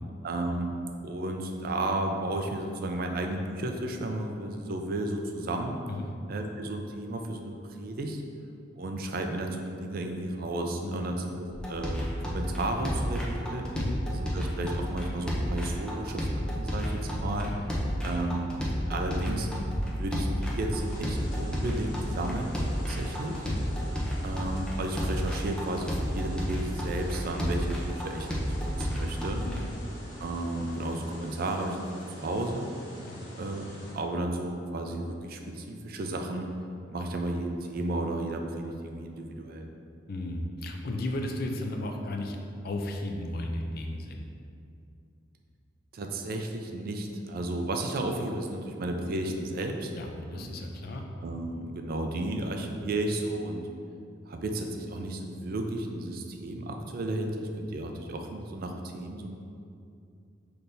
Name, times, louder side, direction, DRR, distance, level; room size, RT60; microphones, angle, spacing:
voice 1, 0.2-0.7 1.0-5.8 6.3-8.2 8.8-11.3 11.7-13.6 14.2-17.5 18.0-18.5 18.9-19.5 20.0-23.4 24.2-29.4 30.2-32.7 33.4-36.5 36.9-39.7 45.9-49.9 50.3-50.5 51.2-53.6 54.3-59.4, right 1 dB, 50° right, 3 dB, 0.4 m, -33 dB
sound 1, 11.5-29.6, equal, 5° left, 0.6 m, -31 dB
voice 2, 17.3-17.9 23.4-23.6 29.4-29.7 33.1-33.2 40.1-42.4 42.6-44.3 49.9-51.0, left 1 dB, 50° left, 3 dB, 0.4 m, -35 dB
sound 2, 20.8-33.9, equal, 70° left, 0.9 m, -47 dB
5.8 x 3.3 x 2.6 m, 2.5 s
head